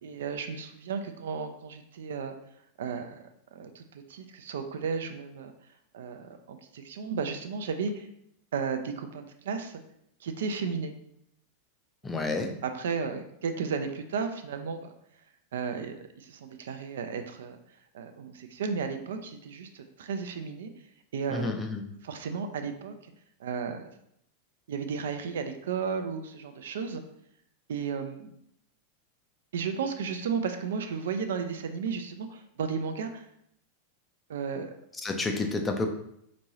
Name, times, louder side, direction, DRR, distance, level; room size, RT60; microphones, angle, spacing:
voice 1, 0.0-2.3 2.8-3.2 3.5-5.5 5.9-8.1 8.5-9.8 10.2-10.9 12.6-14.9 15.5-17.6 17.9-20.7 21.1-21.5 22.0-23.0 23.4-23.9 24.7-27.0 27.7-28.3 29.5-33.2 34.3-34.7, right 5 dB, 60° right, 7 dB, 0.3 m, -34 dB
voice 2, 12.0-12.5 21.3-21.8 35.0-35.9, left 3 dB, 15° left, 4 dB, 0.5 m, -30 dB
4.3 x 3.0 x 2.8 m, 0.74 s
figure-of-eight pair, 90°, 0 cm